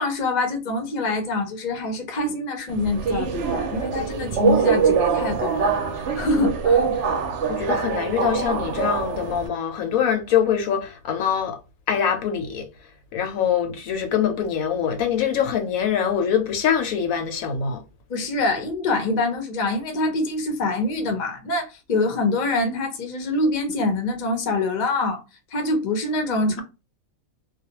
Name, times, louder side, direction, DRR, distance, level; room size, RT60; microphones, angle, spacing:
voice 1, 0.0-5.7 6.2-7.0 18.1-25.2 25.5-26.6, left 2 dB, 40° left, 0.6 m, -25 dB
Subway metro underground, 2.7-9.5, right 6 dB, 65° right, 0.7 m, -23 dB
voice 2, 7.5-11.6 11.9-12.7 13.1-17.8, left 8 dB, 80° left, 1.0 m, -23 dB
2.4 x 2.2 x 2.8 m
omnidirectional pair, 1.5 m